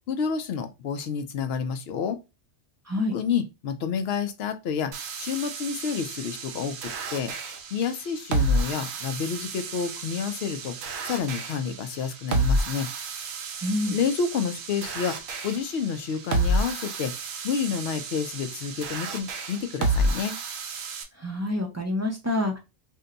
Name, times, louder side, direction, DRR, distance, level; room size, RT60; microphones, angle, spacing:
voice 1, 0.1-2.2 3.1-7.3 7.7-10.8 11.1-12.9 13.9-15.2 15.4-17.1 17.4-20.4, left 6 dB, 65° left, 0.7 m, -29 dB
sound 1, 4.9-21.0, right 1 dB, 65° right, 0.8 m, -30 dB
voice 2, 13.6-14.0 21.1-22.6, left 2 dB, 25° right, 0.4 m, -27 dB
2.7 x 2.2 x 3.8 m
omnidirectional pair, 1.3 m